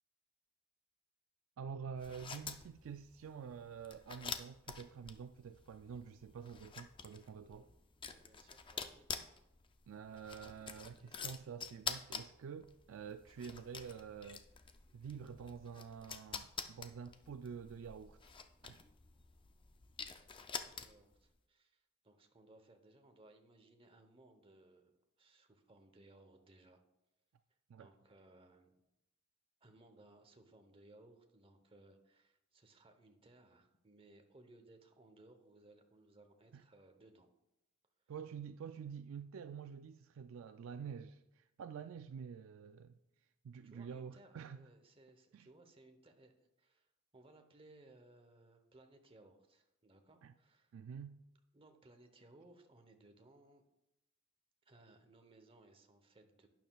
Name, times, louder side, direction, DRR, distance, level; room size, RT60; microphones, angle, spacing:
voice 1, 1.6-7.7 9.9-14.4 14.9-18.2 18.6-18.8 27.7-27.9 36.5-36.6 38.1-42.9 43.4-44.6 45.3-45.5 50.2-50.3 50.7-51.2, right 7 dB, 65° right, 0.3 m, -48 dB
sound 1, 2.0-21.2, left 6 dB, 25° left, 0.4 m, -48 dB
voice 2, 7.4-7.8 8.0-9.1 20.2-24.9 25.2-26.8 27.8-28.8 29.6-37.3 43.6-46.9 47.1-50.7 51.5-53.6 54.6-56.5, right 2 dB, 25° right, 0.9 m, -63 dB
11.5 x 9.1 x 2.3 m
head